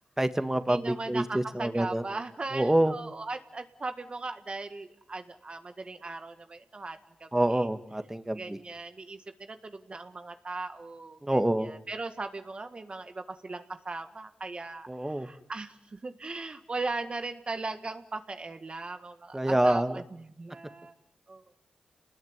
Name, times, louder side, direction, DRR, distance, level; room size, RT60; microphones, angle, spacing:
voice 1, 0.2-2.0 2.5-2.9 7.3-8.6 11.2-11.7 14.9-15.3 19.3-20.0, right 1 dB, 15° right, 9 dB, 2.0 m, -26 dB
voice 2, 0.7-7.7 8.4-20.9 21.3-21.6, right 3 dB, 40° right, 7 dB, 1.7 m, -38 dB
28.0 x 20.0 x 9.7 m, 0.80 s
cardioid pair, 50°, 3 cm